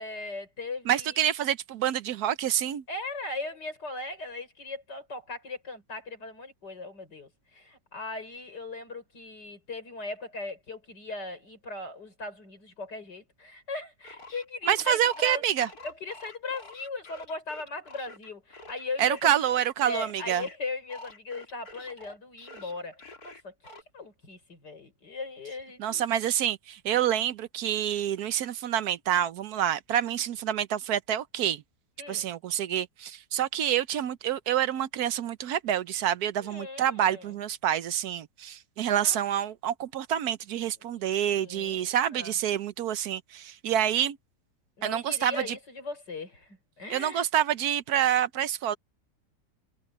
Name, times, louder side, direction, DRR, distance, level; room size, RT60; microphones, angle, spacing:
voice 1, 0.0-1.1 2.9-15.4 15.8-19.3 19.8-23.5 23.9-26.1 32.0-32.3 36.4-37.3 39.0-39.2 41.0-42.4 44.8-47.3, left 3 dB, 90° left, 6.6 m, -38 dB
voice 2, 0.9-2.8 14.7-15.7 19.0-20.4 25.8-31.6 32.1-44.2 44.8-45.6 46.9-48.7, right 10 dB, 70° right, 1.2 m, -27 dB
sound 1, 14.0-20.6 20.9-23.8, left 2 dB, 60° left, 3.6 m, -47 dB
omnidirectional pair, 1.8 m